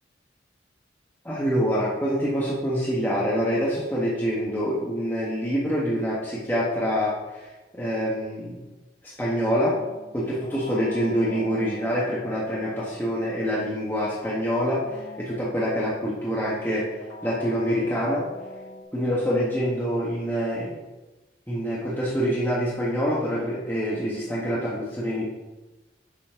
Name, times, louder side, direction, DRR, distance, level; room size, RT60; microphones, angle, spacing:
voice 1, 1.2-7.5 7.7-8.6 9.2-9.8 10.1-16.9 17.2-18.2 18.9-20.8 21.5-25.3, equal, 10° left, -7 dB, 1.4 m, -26 dB
sound 1, 9.6-14.2 14.7-18.8, left 1 dB, 65° left, 2.4 m, -43 dB
8.8 x 4.4 x 5.8 m, 1.1 s
head